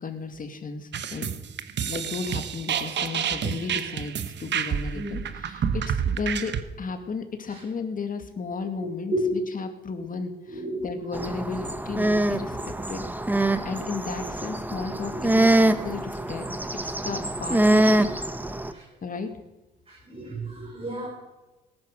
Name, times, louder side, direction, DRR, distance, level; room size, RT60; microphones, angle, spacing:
voice 1, 0.0-1.4 1.9-13.1 13.6-16.5 16.8-18.1 19.0-19.3, left 4 dB, 45° left, 7 dB, 2.3 m, -34 dB
sound 1, 0.9-6.6, right 8 dB, 70° right, 1.2 m, -29 dB
voice 2, 8.8-9.3 10.5-10.8 15.1-15.2 18.7-18.8 19.9-21.1, equal, 30° right, -2 dB, 5.5 m, -31 dB
sound 2, 11.1-18.7, right 1 dB, 10° right, 1.1 m, -24 dB
18.5 x 10.5 x 6.6 m, 1.0 s
cardioid pair, 95°, 19 cm